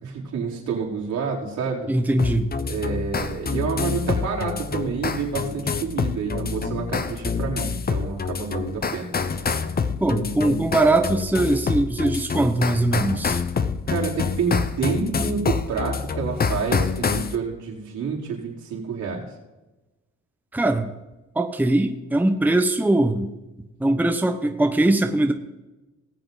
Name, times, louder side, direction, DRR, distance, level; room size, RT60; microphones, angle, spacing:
voice 1, 0.0-1.9 2.6-9.1 13.9-19.3, right 5 dB, 75° right, -3 dB, 4.3 m, -28 dB
voice 2, 1.9-2.5 10.0-13.4 20.5-20.9 21.3-23.3 23.8-25.3, right 2 dB, 5° right, 6 dB, 0.9 m, -21 dB
sound 1, 2.2-17.4, left 5 dB, 30° left, 0.8 m, -27 dB
19.5 x 7.7 x 4.0 m, 1.1 s
cardioid pair, 90°, 30 cm